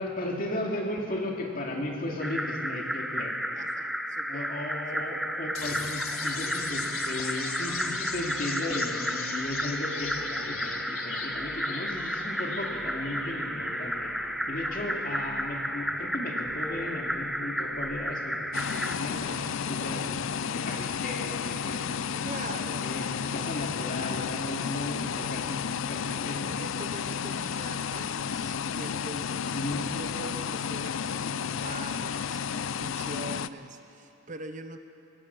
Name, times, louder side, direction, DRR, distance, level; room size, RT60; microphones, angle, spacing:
voice 1, 0.0-3.3 4.3-14.1 14.5-22.2 22.8-23.1 23.3-26.5 29.5-29.8, left 1 dB, 40° left, 0 dB, 2.5 m, -35 dB
sound 1, 2.2-19.0, equal, ahead, 0.4 m, -33 dB
voice 2, 3.5-4.5 4.9-5.4 19.8-20.1 22.2-22.9 26.6-34.8, right 2 dB, 35° right, 8 dB, 0.8 m, -43 dB
sound 2, 5.5-19.5, left 5 dB, 85° left, 1.8 m, -40 dB
sound 3, 18.5-33.5, left 7 dB, 70° left, 0.5 m, -32 dB
24.0 x 18.0 x 6.1 m, 2.8 s
head